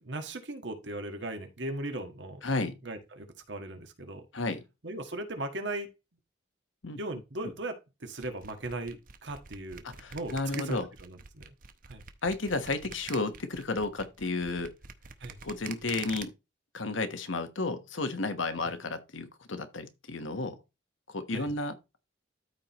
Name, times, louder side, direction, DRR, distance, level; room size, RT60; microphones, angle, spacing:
voice 1, 0.0-2.4 2.8-4.3 4.8-5.9 7.0-9.8 10.1-11.5 11.9-12.0 15.2-15.4 21.3-21.5, right 2 dB, 70° right, 1.6 m, -38 dB
voice 2, 2.4-2.7 4.3-4.6 6.8-7.0 9.8-10.9 12.2-14.7 15.4-16.3 16.7-20.6 21.1-21.7, left 3 dB, 85° left, 1.2 m, -32 dB
sound 1, 8.2-16.2, right 6 dB, 45° right, 0.8 m, -45 dB
13.0 x 4.4 x 3.0 m
head